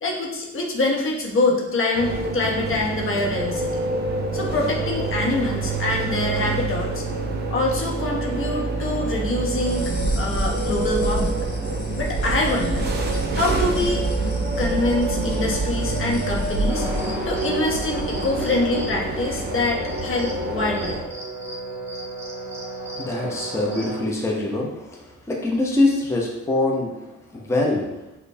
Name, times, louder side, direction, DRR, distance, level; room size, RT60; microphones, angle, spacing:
voice 1, 0.0-3.8 4.3-7.0 7.5-11.4 12.0-12.9 13.3-14.0 14.6-16.9 17.3-21.0, left 2 dB, 45° left, -1 dB, 0.7 m, -25 dB
sound 1, 1.9-21.0, right 3 dB, 35° right, 0.6 m, -27 dB
sound 2, 9.6-18.3, equal, 75° left, 0.6 m, -29 dB
sound 3, 16.7-24.0, right 2 dB, 10° right, 0.9 m, -33 dB
voice 2, 22.9-28.2, left 2 dB, 10° left, -2 dB, 0.6 m, -24 dB
4.9 x 2.2 x 2.6 m, 0.97 s
cardioid pair, 90°, 30 cm